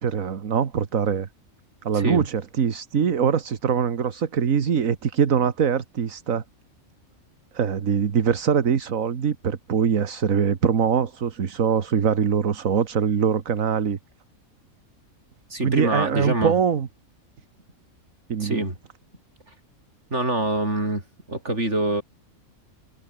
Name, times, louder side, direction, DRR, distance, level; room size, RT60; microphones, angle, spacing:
voice 1, 0.0-1.3 1.8-6.4 7.5-14.0 15.6-16.9 18.3-18.6, right 7 dB, 65° right, 1.8 m, -23 dB
voice 2, 1.9-2.2 15.5-16.6 18.4-18.8 20.1-21.0 21.3-22.0, right 2 dB, 50° right, 6.7 m, -25 dB
omnidirectional pair, 1.5 m